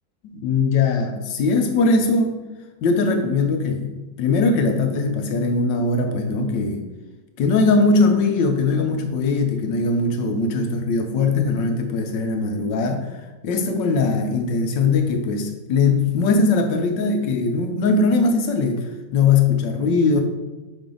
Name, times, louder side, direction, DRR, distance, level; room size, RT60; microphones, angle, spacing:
voice 1, 0.2-2.4 2.8-6.8 7.4-20.2, left 3 dB, 80° left, 5 dB, 1.4 m, -20 dB
5.8 x 5.3 x 3.8 m, 1.1 s
omnidirectional pair, 2.0 m